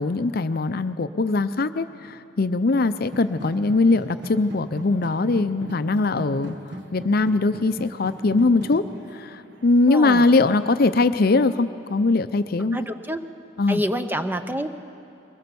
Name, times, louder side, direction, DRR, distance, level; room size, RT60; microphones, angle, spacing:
voice 1, 0.0-8.8 9.1-12.8 13.6-13.8, left 3 dB, 50° left, 11 dB, 0.6 m, -21 dB
sound 1, 3.0-11.9, equal, 65° right, 1.4 m, -39 dB
voice 2, 9.8-10.2 12.7-13.2 13.7-14.7, equal, 10° right, 8 dB, 0.7 m, -27 dB
23.0 x 20.5 x 7.0 m, 2.7 s
head